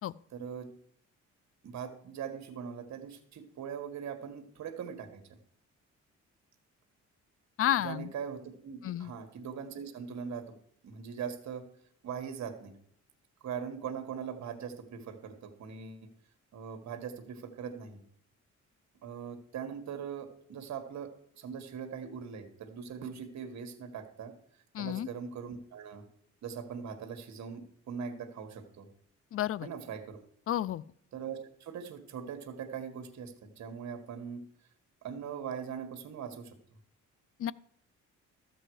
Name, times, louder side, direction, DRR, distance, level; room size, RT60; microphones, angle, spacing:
voice 1, 0.3-0.7 1.6-5.4 7.8-10.5 10.8-11.6 12.0-12.7 13.4-16.1 16.5-18.0 19.0-21.1 21.4-24.3 24.8-26.0 26.4-28.9 29.6-30.2 31.1-34.4 35.0-36.6, right 7 dB, 65° right, 7 dB, 1.7 m, -41 dB
voice 2, 7.6-8.1 8.8-9.1 24.7-25.1 29.3-29.7 30.5-30.8 37.4-37.5, left 11 dB, 50° left, 22 dB, 0.4 m, -31 dB
13.5 x 7.9 x 4.8 m, 0.65 s
cardioid pair, 90°, 30 cm